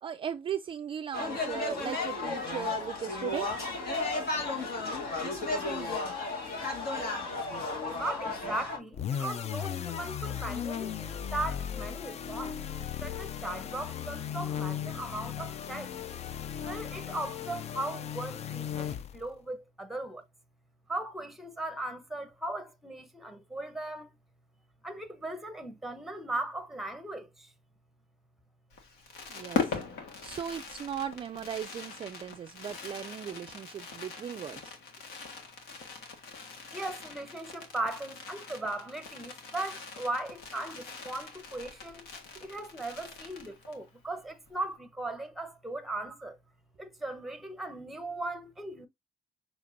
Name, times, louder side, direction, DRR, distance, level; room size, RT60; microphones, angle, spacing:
voice 1, 0.0-3.5 29.3-29.8 30.2-34.8, right 8 dB, 30° right, 0.3 m, -37 dB
sound 1, 1.1-8.8, left 3 dB, 65° left, 1.8 m, -33 dB
voice 2, 7.9-15.9 16.6-20.2 20.9-24.1 24.8-27.3 36.7-42.1 42.4-46.4 46.8-48.9, right 2 dB, ahead, 0.8 m, -38 dB
sound 2, 8.9-19.3, left 9 dB, 40° left, 0.4 m, -36 dB
Fireworks, 28.7-43.9 44.2-44.3 44.5-44.8, left 5 dB, 80° left, 1.5 m, -41 dB
6.5 x 3.0 x 2.5 m
cardioid pair, 110°, 17 cm